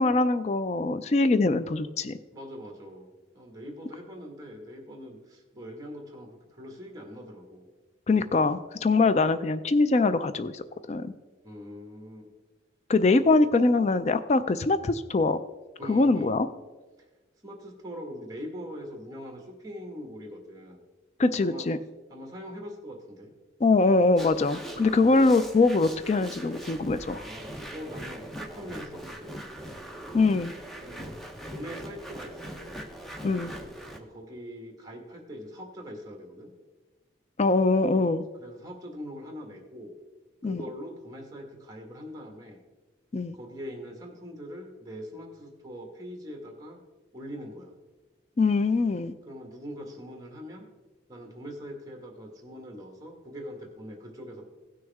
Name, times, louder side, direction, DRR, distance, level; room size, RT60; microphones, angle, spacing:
voice 1, 0.0-2.2 8.1-11.1 12.9-15.4 15.9-16.5 21.2-21.8 23.6-27.2 30.1-30.5 33.2-33.5 37.4-38.2 40.4-40.6 43.1-43.3 48.4-49.1, left 3 dB, 35° left, 12 dB, 0.3 m, -23 dB
voice 2, 2.3-7.7 11.4-12.3 15.8-16.3 17.4-20.8 21.4-21.7 22.1-23.3 24.9-25.3 27.1-29.6 30.8-31.2 31.5-32.8 33.9-36.5 37.9-38.1 38.4-39.9 40.4-42.6 43.3-46.8 47.1-47.7 49.3-50.7 51.1-54.5, equal, 20° right, 2 dB, 1.7 m, -42 dB
sound 1, 24.2-34.0, right 1 dB, ahead, 0.7 m, -41 dB
16.5 x 6.3 x 3.5 m, 1.2 s
head